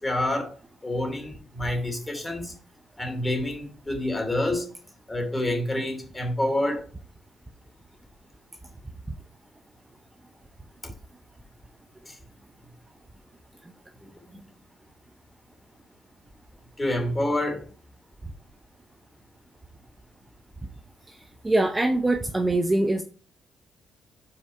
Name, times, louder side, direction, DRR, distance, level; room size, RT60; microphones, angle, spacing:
voice 1, 0.0-0.6 0.8-2.5 3.0-4.7 5.1-6.9 10.8-10.9 12.1-12.2 14.0-14.4 16.8-17.7, left 1 dB, 15° left, 3 dB, 2.6 m, -28 dB
voice 2, 21.4-23.0, right 2 dB, 15° right, 5 dB, 0.7 m, -23 dB
5.7 x 4.6 x 4.4 m, 0.39 s
cardioid pair, 90°, 0 cm